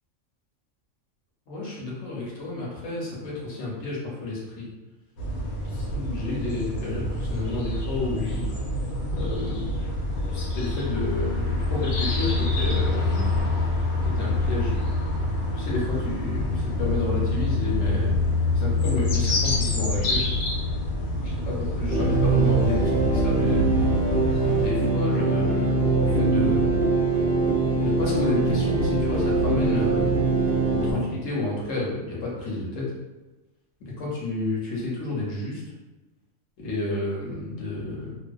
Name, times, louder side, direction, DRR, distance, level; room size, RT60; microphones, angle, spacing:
voice 1, 1.5-4.7 5.7-8.4 9.1-9.7 10.3-13.3 14.0-14.7 15.6-18.2 18.5-20.2 21.2-23.7 24.5-26.9 27.8-30.2 30.7-32.9 34.0-35.6 36.6-38.1, left 2 dB, 70° left, -4 dB, 1.0 m, -30 dB
sound 1, 5.2-24.7, left 2 dB, 90° left, 1.1 m, -26 dB
sound 2, 21.9-30.9, right 3 dB, 65° right, 0.5 m, -22 dB
2.6 x 2.1 x 2.2 m, 1.1 s
omnidirectional pair, 1.5 m